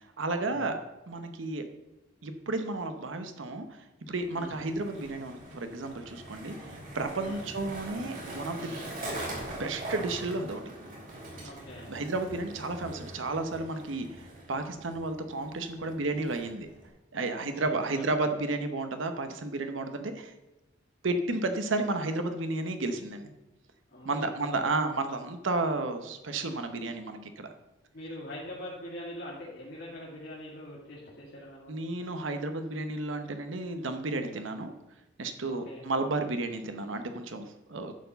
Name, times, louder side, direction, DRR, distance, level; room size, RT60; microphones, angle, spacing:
voice 1, 0.2-0.8 1.1-1.6 2.2-3.7 4.0-8.8 9.5-10.6 11.9-16.7 17.1-20.3 21.0-23.3 24.0-27.5 31.7-34.7 35.2-37.9, right 2 dB, 75° right, 7 dB, 0.8 m, -32 dB
Skateboard, 4.2-16.9, right 1 dB, 45° right, 3.3 m, -43 dB
voice 2, 11.4-11.9 17.4-17.7 17.9-18.0 23.9-24.2 24.5-24.6 27.9-31.9 35.5-35.8, left 1 dB, 55° left, -6 dB, 2.3 m, -43 dB
10.5 x 4.6 x 6.8 m, 1.0 s
head